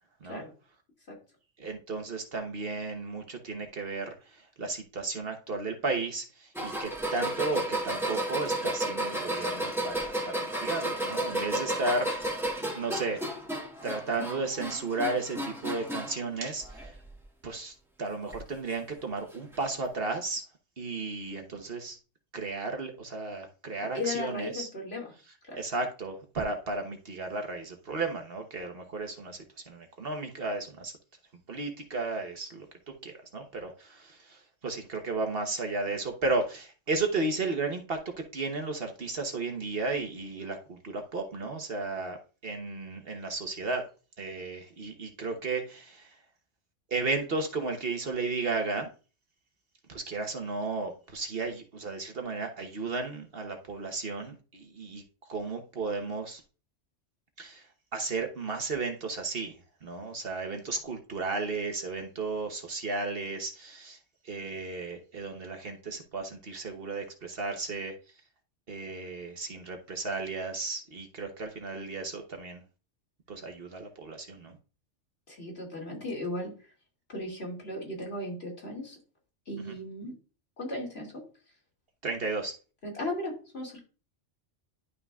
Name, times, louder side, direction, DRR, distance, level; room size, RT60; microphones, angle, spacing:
voice 1, 1.6-4.1 4.6-13.2 13.8-16.9 17.4-20.4 20.8-22.0 22.3-24.7 25.5-30.9 31.5-42.2 42.4-43.8 44.2-46.1 46.9-48.9 49.9-55.0 55.3-56.4 57.4-57.6 57.9-59.5 59.8-64.0 64.2-67.9 68.7-72.6 73.3-74.6 79.7-79.8 82.0-82.5, right 3 dB, 55° right, 5 dB, 1.2 m, -34 dB
sound 1, 6.6-16.2 16.6-17.2 18.3-18.4 19.5-19.6, right 1 dB, ahead, 1.6 m, -33 dB
voice 2, 23.9-25.1 25.5-25.6 75.3-76.5 77.1-79.0 79.5-80.1 80.6-81.1 82.8-83.8, left 2 dB, 55° left, -1 dB, 2.8 m, -36 dB
11.0 x 5.8 x 2.4 m, 0.35 s
omnidirectional pair, 1.2 m